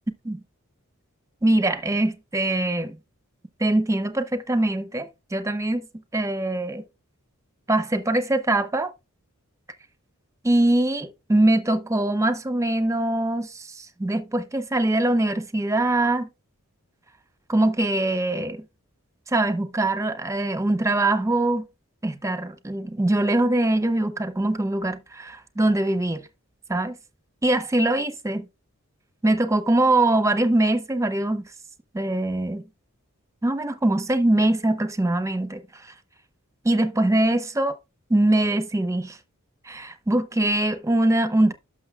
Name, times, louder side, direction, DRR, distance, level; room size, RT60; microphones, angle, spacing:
voice 1, 1.4-3.0 3.6-5.9 6.1-6.8 7.7-8.9 10.4-16.3 17.5-18.6 19.3-21.7 22.0-26.2 26.7-26.9 27.4-28.5 29.2-31.4 31.9-32.6 33.4-35.6 36.6-37.7 38.1-39.2 39.7-41.5, right 1 dB, 15° right, 0.7 m, -22 dB
12.0 x 6.2 x 2.4 m
head